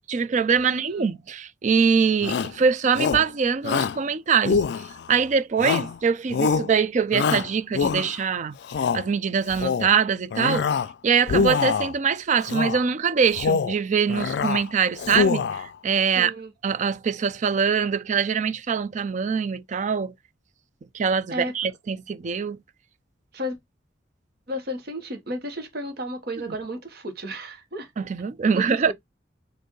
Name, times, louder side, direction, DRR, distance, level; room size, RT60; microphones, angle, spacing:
voice 1, 0.1-4.6 5.1-8.6 8.9-10.7 11.0-16.3 16.6-20.1 20.9-22.6 28.0-28.9, right 6 dB, 40° right, 0.4 m, -23 dB
voice 2, 0.7-1.1 16.1-16.5 21.3-21.5 23.3-23.6 24.5-27.9 28.5-28.9, equal, 60° right, 1.2 m, -33 dB
Shout, 2.2-2.6 3.0-3.3 3.6-4.0 4.5-5.1 5.6-6.0 6.3-6.7 7.1-8.2 8.6-9.0 9.5-9.9 10.3-10.9 11.2-11.9 12.5-12.8 13.3-13.8 14.1-14.6 15.0-15.7, left 5 dB, 65° left, 0.3 m, -24 dB
4.4 x 2.6 x 3.1 m
head